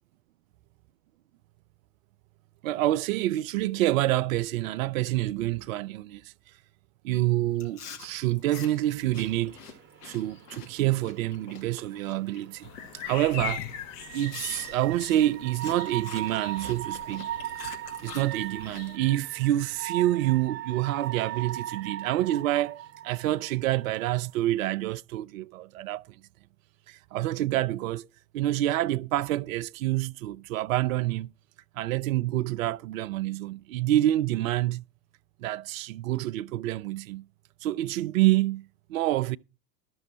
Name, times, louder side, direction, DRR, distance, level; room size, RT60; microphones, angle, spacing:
voice 1, 2.6-6.3 7.0-9.6 10.0-12.7 12.9-13.7 14.1-17.3 18.0-26.2 26.9-28.1 28.3-31.3 31.8-34.8 35.4-37.2 37.6-39.4, right 14 dB, 55° right, 0.5 m, -27 dB
Chewing mastication, 7.6-12.4 12.8-13.1 13.6-13.7 14.3-18.8, left 7 dB, 65° left, 2.3 m, -46 dB
sound 1, 8.6-24.5, right 12 dB, 25° right, 1.0 m, -40 dB
sound 2, 12.6-19.0, left 9 dB, 40° left, 1.0 m, -41 dB
12.5 x 6.2 x 6.3 m
figure-of-eight pair, 95°, 49 cm